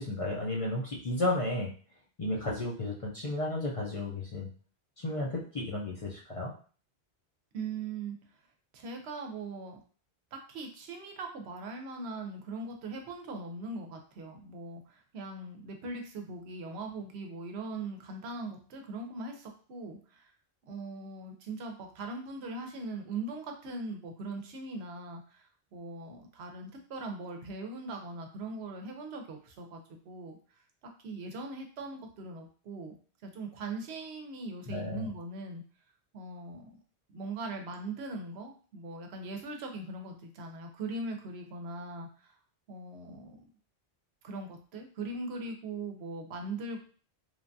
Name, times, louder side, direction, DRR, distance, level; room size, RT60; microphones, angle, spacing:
voice 1, 0.0-1.7 2.2-4.5 5.0-6.5 34.7-35.1, left 1 dB, 45° left, -4 dB, 0.5 m, -33 dB
voice 2, 7.5-8.2 8.7-9.8 10.3-20.3 20.7-30.4 31.0-32.9 33.2-35.6 36.1-36.7 37.1-42.3 42.7-43.5 44.2-46.8, right 2 dB, 85° right, 3 dB, 0.9 m, -40 dB
3.1 x 2.2 x 2.5 m, 0.41 s
omnidirectional pair, 1.1 m